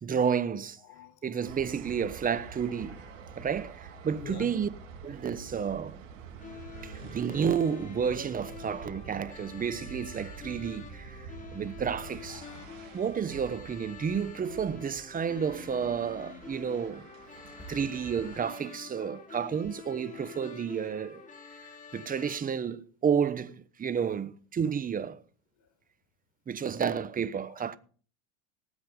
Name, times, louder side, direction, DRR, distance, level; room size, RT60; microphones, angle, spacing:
voice 1, 0.0-0.8 1.2-3.0 3.4-4.7 5.0-6.0 6.8-11.2 11.5-12.4 12.9-17.1 17.7-21.2 21.9-25.2 26.5-27.8, right 7 dB, 20° right, 1.1 m, -31 dB
sound 1, 1.4-18.4, right 5 dB, 80° right, 3.3 m, -47 dB
voice 2, 4.2-4.5 12.3-12.7 17.3-17.7 19.0-19.2 23.9-24.0 27.5-27.6, left 9 dB, 45° left, 4.8 m, -47 dB
sound 2, 6.4-22.4, left 7 dB, 20° left, 5.6 m, -48 dB
19.0 x 8.3 x 5.4 m
hypercardioid pair, 85°, 38 cm